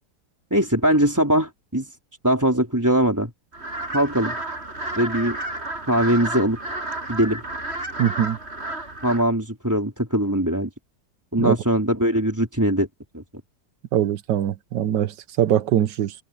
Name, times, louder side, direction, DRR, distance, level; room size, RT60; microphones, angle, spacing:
voice 1, 0.5-1.9 2.2-3.3 3.9-4.4 4.9-5.4 5.9-6.6 7.1-7.4 9.0-10.7 11.3-12.9 13.1-13.2, right 1 dB, 10° right, 3.8 m, -21 dB
sound 1, 3.5-9.2, right 2 dB, 35° right, 7.9 m, -31 dB
voice 2, 8.0-8.4 11.4-11.6 13.9-16.1, right 10 dB, 80° right, 1.5 m, -22 dB
omnidirectional pair, 1.9 m